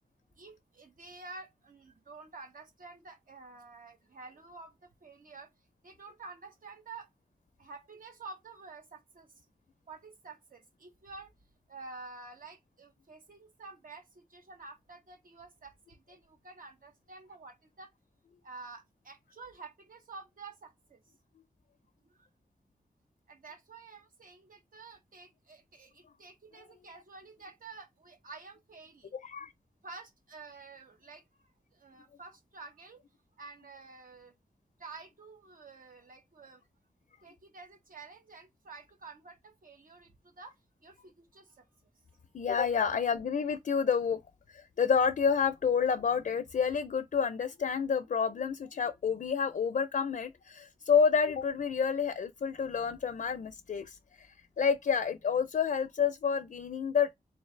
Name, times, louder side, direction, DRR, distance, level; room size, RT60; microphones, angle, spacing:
voice 1, 0.4-5.5 5.8-7.1 7.6-9.5 9.9-11.3 11.7-17.9 18.4-21.0 22.0-22.3 23.3-29.2 29.8-31.2 31.7-33.0 33.4-34.3 34.8-36.6 37.2-40.5 40.8-41.7, right 3 dB, 70° right, 1.1 m, -50 dB
voice 2, 42.3-44.2 44.5-57.1, left 6 dB, 65° left, 0.4 m, -29 dB
3.9 x 3.2 x 3.1 m
wide cardioid pair, 125°, 15 cm